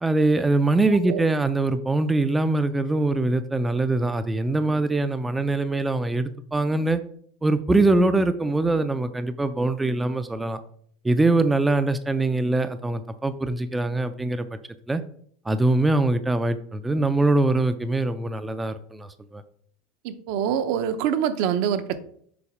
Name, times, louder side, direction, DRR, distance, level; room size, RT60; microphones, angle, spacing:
voice 1, 0.0-7.0 7.4-10.6 11.0-14.5 14.9-15.0 15.5-19.4, right 2 dB, 10° right, 10 dB, 0.4 m, -23 dB
voice 2, 0.9-1.2 20.0-22.0, right 9 dB, 65° right, 10 dB, 0.7 m, -25 dB
7.0 x 4.2 x 4.9 m, 0.62 s
supercardioid pair, 140°, 0 cm